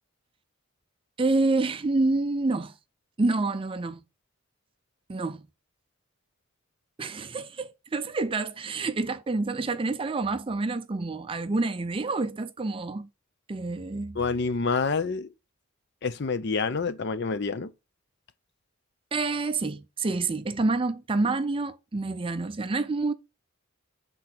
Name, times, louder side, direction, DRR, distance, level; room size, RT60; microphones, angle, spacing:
voice 1, 1.2-2.7 3.2-4.0 5.1-5.4 7.0-13.1 13.5-14.2 19.1-23.1, right 3 dB, 25° right, 0.4 m, -28 dB
voice 2, 14.2-15.3 16.0-17.7, left 4 dB, 50° left, 0.5 m, -27 dB
7.6 x 3.8 x 5.9 m
head